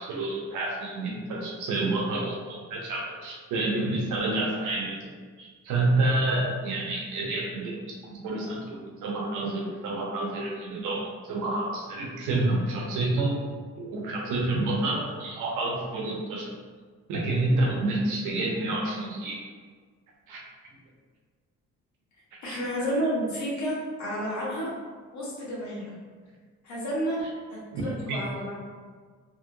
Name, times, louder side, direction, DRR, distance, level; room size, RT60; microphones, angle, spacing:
voice 1, 0.0-5.1 5.4-7.8 8.1-13.4 13.8-16.5 17.1-19.4 20.3-20.4 22.5-22.6 27.7-27.8 28.1-28.2, right 2 dB, 85° right, -1 dB, 0.8 m, -28 dB
voice 2, 22.4-24.7 25.1-25.9 26.6-27.2 27.5-28.6, equal, 70° left, -6 dB, 1.3 m, -31 dB
2.9 x 2.7 x 2.6 m, 1.5 s
cardioid pair, 90°, 30 cm